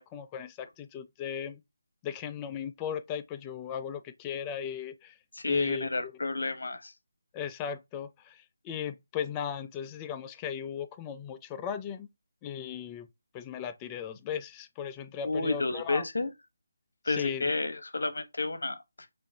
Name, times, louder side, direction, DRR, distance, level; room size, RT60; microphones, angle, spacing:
voice 1, 0.0-1.6 2.0-5.2 5.4-6.1 7.3-12.1 12.4-13.1 13.3-16.0 17.1-17.5, left 8 dB, 15° left, 0.4 m, -37 dB
voice 2, 5.3-6.9 15.2-16.3 17.0-19.1, left 3 dB, 70° left, 1.0 m, -31 dB
6.3 x 2.6 x 2.6 m
figure-of-eight pair, 155°, 0 cm